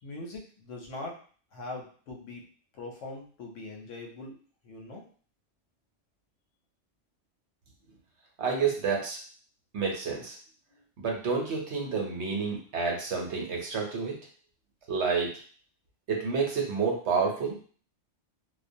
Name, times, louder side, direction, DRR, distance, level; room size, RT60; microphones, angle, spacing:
voice 1, 0.0-1.2 1.5-2.4 2.7-4.4 4.6-5.0, left 2 dB, 85° left, 1 dB, 1.0 m, -41 dB
voice 2, 8.4-9.2 9.7-10.3 11.0-14.2 14.9-15.3 16.1-17.6, right 5 dB, 70° right, 0 dB, 1.0 m, -29 dB
2.3 x 2.2 x 2.6 m, 0.43 s
omnidirectional pair, 1.3 m